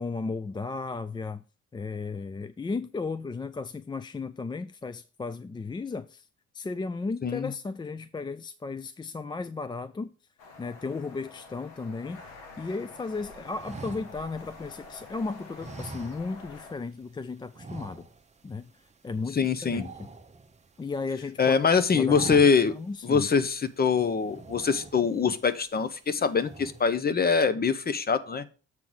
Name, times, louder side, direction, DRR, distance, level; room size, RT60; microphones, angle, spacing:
voice 1, 0.0-1.4 1.7-6.3 6.5-10.1 10.6-12.2 12.6-18.1 18.4-18.7 19.0-20.1 20.8-21.6 21.9-23.3, left 4 dB, 15° left, 0.3 m, -35 dB
sound 1, 10.4-16.7, left 3 dB, 85° left, 2.1 m, -47 dB
sound 2, 13.6-15.0 15.6-16.7 16.9-17.1 17.5-18.4 18.7-18.9 19.2-20.9 21.3-21.6 21.9-22.9 23.3-23.4 24.2-25.3 25.8-26.1 26.4-27.0, right 3 dB, 25° right, 0.9 m, -43 dB
voice 2, 19.3-19.8 21.4-22.7 23.0-28.4, left 5 dB, 30° left, 0.8 m, -24 dB
7.5 x 3.9 x 6.2 m
cardioid pair, 90°, 30 cm